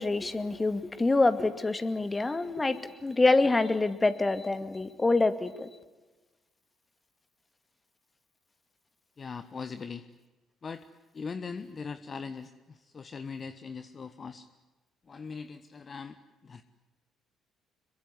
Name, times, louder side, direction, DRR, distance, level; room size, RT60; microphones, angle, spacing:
voice 1, 0.0-5.7, left 3 dB, 20° left, 2.2 m, -26 dB
voice 2, 9.2-10.0 10.6-10.8 11.1-14.5 15.1-16.2 16.4-16.6, left 5 dB, 40° left, 1.1 m, -40 dB
26.5 x 23.0 x 9.7 m
figure-of-eight pair, 45°, 0 cm